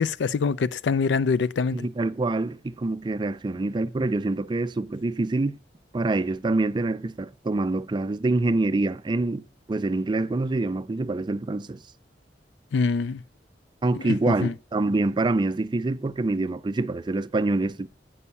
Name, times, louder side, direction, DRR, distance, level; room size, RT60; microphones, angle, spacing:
voice 1, 0.0-1.9 12.7-13.2 13.9-14.5, left 5 dB, 85° left, 0.4 m, -24 dB
voice 2, 1.7-5.6 5.9-11.8 13.8-17.9, right 2 dB, 25° right, 0.4 m, -26 dB
8.3 x 5.5 x 6.9 m
head